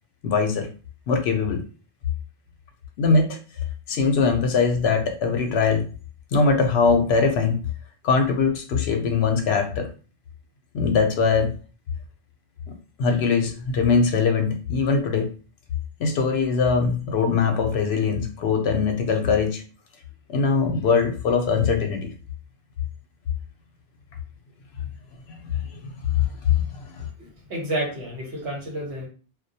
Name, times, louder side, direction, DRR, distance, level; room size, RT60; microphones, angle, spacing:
voice 1, 0.2-0.7 1.1-1.6 3.0-3.4 3.9-5.9 6.3-7.6 8.0-9.9 10.7-11.6 13.0-15.3 16.0-19.6 20.3-22.1 25.3-25.8 26.1-27.1, left 5 dB, 70° left, 4 dB, 0.8 m, -22 dB
voice 2, 27.2-29.1, right 1 dB, 80° right, -1 dB, 1.2 m, -30 dB
2.2 x 2.1 x 2.6 m, 0.36 s
omnidirectional pair, 1.1 m